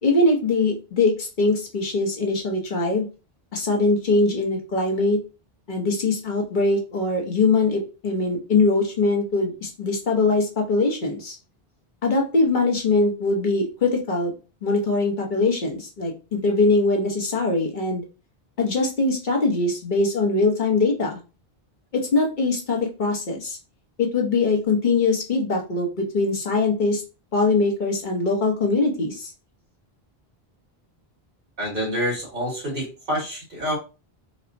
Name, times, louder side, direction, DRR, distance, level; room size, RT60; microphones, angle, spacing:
voice 1, 0.0-3.1 3.5-5.2 5.7-11.4 12.0-14.3 14.6-18.0 18.6-21.2 21.9-23.6 24.0-27.0 27.3-29.3, left 3 dB, 55° left, 0 dB, 0.9 m, -22 dB
voice 2, 31.6-33.8, equal, 60° right, -3 dB, 1.7 m, -27 dB
4.1 x 2.0 x 2.5 m, 0.32 s
omnidirectional pair, 1.0 m